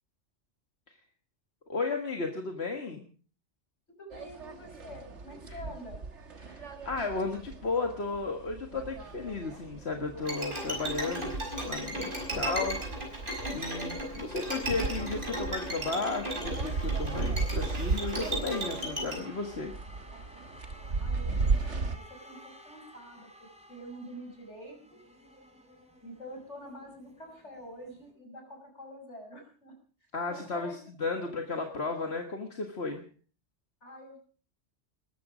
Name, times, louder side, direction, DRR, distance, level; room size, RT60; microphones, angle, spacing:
voice 1, 1.7-3.1 5.5-5.6 6.4-11.4 11.6-19.7 30.1-33.0, left 3 dB, 65° left, 4 dB, 1.9 m, -34 dB
voice 2, 4.0-6.0 21.0-25.0 26.0-29.7 30.3-30.8 31.2-31.3 33.8-34.2, equal, 80° left, 3 dB, 6.3 m, -47 dB
sound 1, 4.1-22.0, right 4 dB, 80° right, 1.9 m, -36 dB
Bowed string instrument, 10.2-19.2, right 1 dB, 45° right, 6.0 m, -35 dB
sound 2, 16.6-28.1, equal, 5° right, 3.8 m, -53 dB
21.0 x 14.0 x 5.0 m, 0.41 s
omnidirectional pair, 1.2 m